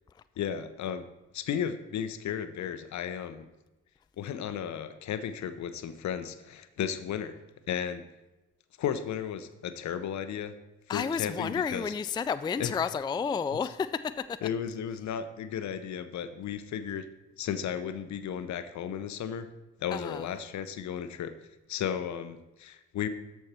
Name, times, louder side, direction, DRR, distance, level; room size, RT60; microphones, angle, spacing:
voice 1, 0.4-1.1 1.3-3.5 4.2-7.4 7.7-8.0 8.8-10.5 10.9-11.9 12.6-12.7 14.4-17.1 17.4-19.5 19.8-21.3 21.7-23.1, left 8 dB, 60° left, 11 dB, 0.8 m, -34 dB
voice 2, 10.9-14.4 19.9-20.3, left 6 dB, 15° left, 13 dB, 0.3 m, -31 dB
13.0 x 4.6 x 4.3 m, 1.0 s
hypercardioid pair, 45°, 32 cm